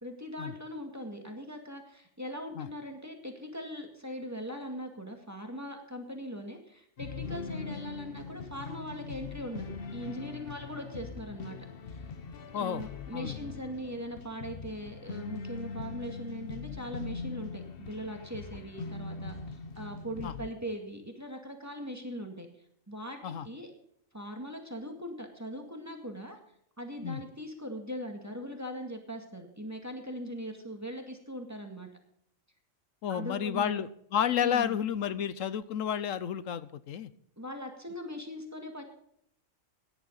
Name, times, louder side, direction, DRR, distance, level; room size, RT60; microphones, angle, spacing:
voice 1, 0.0-11.6 11.9-12.1 12.5-22.5 22.9-23.7 24.1-26.4 26.8-31.9 33.1-33.8 34.4-34.8 37.4-38.8, equal, 10° right, 3 dB, 2.2 m, -40 dB
sound 1, 7.0-20.5, left 4 dB, 50° left, 1.1 m, -41 dB
voice 2, 12.5-12.9 13.1-13.4 20.2-20.3 23.2-23.5 27.0-27.2 33.0-37.1, left 9 dB, 75° left, 15 dB, 1.1 m, -31 dB
17.0 x 10.5 x 4.0 m, 0.71 s
omnidirectional pair, 1.4 m